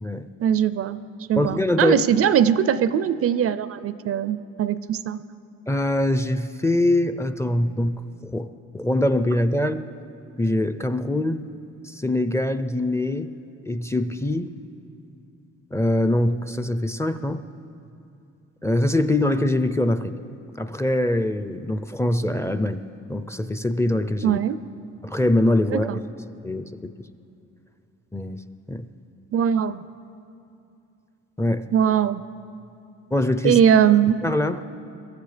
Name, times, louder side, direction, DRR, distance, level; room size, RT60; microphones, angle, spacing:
voice 1, 0.4-1.0 1.3-5.2 24.2-24.6 25.7-26.0 29.3-29.9 31.7-32.2 33.4-34.2, right 9 dB, 50° right, 15 dB, 0.4 m, -20 dB
voice 2, 1.4-2.0 5.7-8.5 8.7-9.8 10.4-11.4 11.8-13.3 13.6-14.5 15.7-17.4 18.6-20.2 20.6-22.8 23.1-24.4 25.0-26.0 26.4-26.9 28.1-28.4 28.7-28.9 31.4-31.7 33.1-33.6 34.2-34.6, left 1 dB, 10° left, 11 dB, 0.4 m, -23 dB
23.0 x 14.0 x 3.3 m, 2.7 s
cardioid pair, 90°, 30 cm